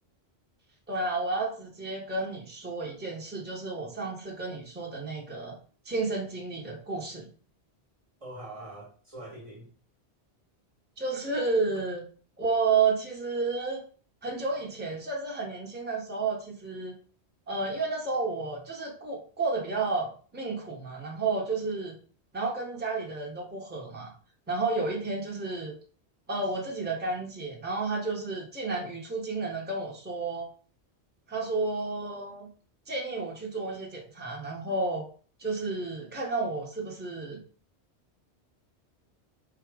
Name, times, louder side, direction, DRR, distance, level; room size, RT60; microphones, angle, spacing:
voice 1, 0.9-5.6 5.8-7.3 11.0-12.0 12.4-13.8 14.2-17.0 17.5-21.9 22.3-24.1 24.5-25.7 26.3-30.5 31.3-32.5 32.9-35.0 35.4-37.4, right 3 dB, 10° right, -2 dB, 0.8 m, -31 dB
voice 2, 8.2-9.7, right 1 dB, 35° right, -1 dB, 1.0 m, -43 dB
4.3 x 2.4 x 4.7 m, 0.41 s
omnidirectional pair, 1.1 m